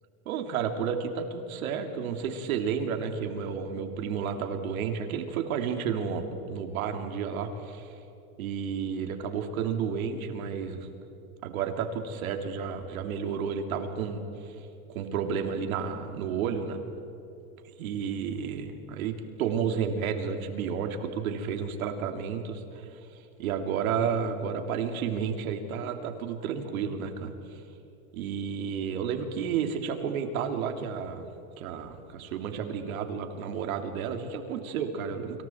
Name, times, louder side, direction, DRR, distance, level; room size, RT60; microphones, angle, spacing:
voice 1, 0.2-7.9 8.4-10.9 11.4-14.5 14.9-16.8 17.8-23.0 23.4-27.6 28.1-31.3 31.6-35.4, right 7 dB, 65° right, 5 dB, 3.1 m, -31 dB
29.5 x 27.0 x 4.6 m, 2.9 s
supercardioid pair, 165°, 46 cm